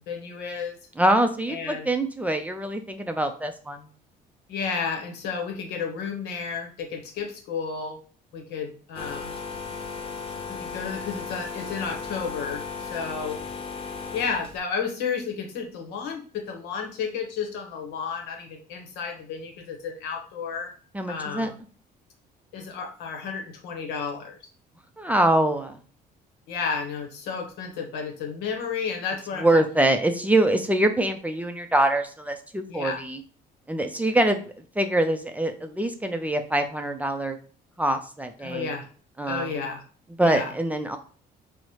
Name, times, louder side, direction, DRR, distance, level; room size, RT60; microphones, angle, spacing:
voice 1, 0.1-0.8 1.5-1.9 4.5-8.0 8.3-9.4 10.5-13.4 14.1-20.7 21.1-21.5 22.5-24.4 26.5-29.5 32.7-33.0 34.0-34.1 38.4-38.9 39.3-39.8 40.2-40.5, left 6 dB, 85° left, 3 dB, 0.9 m, -32 dB
voice 2, 1.0-3.9 20.9-21.5 25.0-25.8 29.4-33.2 33.7-34.4 34.8-37.4 37.8-38.7 39.2-39.5 40.2-41.0, right 1 dB, 10° right, 6 dB, 0.4 m, -24 dB
sound 1, 8.9-14.6, left 5 dB, 30° left, 0.7 m, -36 dB
4.5 x 2.0 x 2.8 m, 0.41 s
cardioid pair, 110°, 17 cm